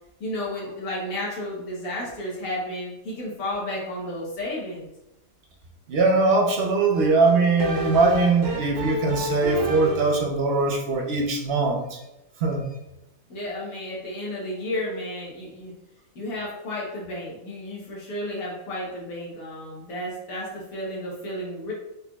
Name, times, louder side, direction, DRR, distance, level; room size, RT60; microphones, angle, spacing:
voice 1, 0.2-4.9 13.3-15.7 16.1-21.7, left 1 dB, 80° left, -5 dB, 1.5 m, -32 dB
voice 2, 5.9-12.0 12.4-12.6, right 3 dB, 55° right, 1 dB, 0.8 m, -21 dB
sound 1, 6.9-10.3, right 1 dB, 75° right, 1.4 m, -30 dB
4.2 x 4.0 x 2.3 m, 0.91 s
omnidirectional pair, 1.5 m